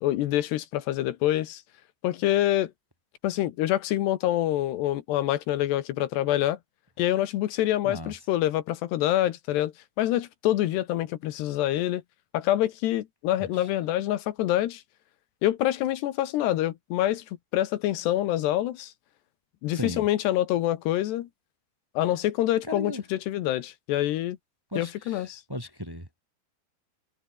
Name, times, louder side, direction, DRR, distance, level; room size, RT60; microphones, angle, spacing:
voice 1, 0.0-1.6 2.0-2.7 3.2-6.6 7.0-12.0 12.3-14.8 15.4-17.2 17.5-18.9 19.6-21.3 22.0-24.4 24.8-25.4, left 13 dB, 75° left, 3.3 m, -26 dB
voice 2, 19.7-20.1 22.6-23.0 24.7-26.2, equal, 5° right, 2.9 m, -37 dB
omnidirectional pair, 4.9 m